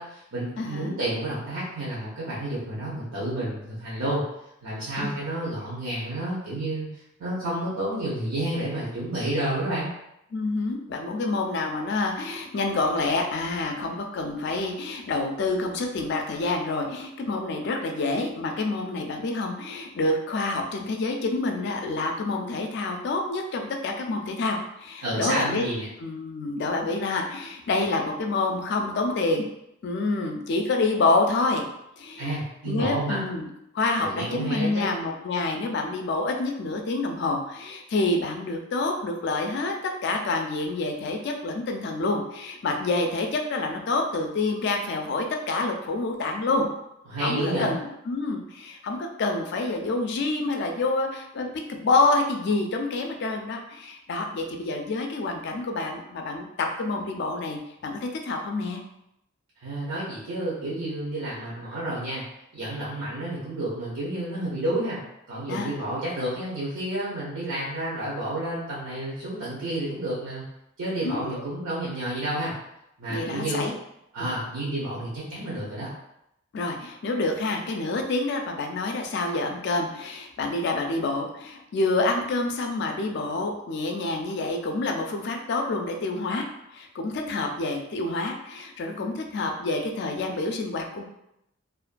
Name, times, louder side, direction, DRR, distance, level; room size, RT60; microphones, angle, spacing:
voice 1, 0.0-4.2 4.6-6.9 7.2-9.9 25.0-25.9 32.2-33.2 34.0-34.9 47.1-47.7 59.6-62.2 62.5-65.0 65.3-70.4 70.8-72.5 73.0-73.6 74.1-75.9, right 1 dB, 80° right, -7 dB, 0.7 m, -30 dB
voice 2, 0.6-1.0 5.0-5.1 10.3-25.6 26.0-29.4 29.8-31.7 32.0-32.3 32.7-33.5 33.7-39.7 40.0-46.7 47.2-58.8 65.5-65.8 71.0-71.4 73.1-73.7 74.2-74.3 76.5-91.0, left 2 dB, 55° left, 3 dB, 0.3 m, -27 dB
2.5 x 2.2 x 2.4 m, 0.82 s
head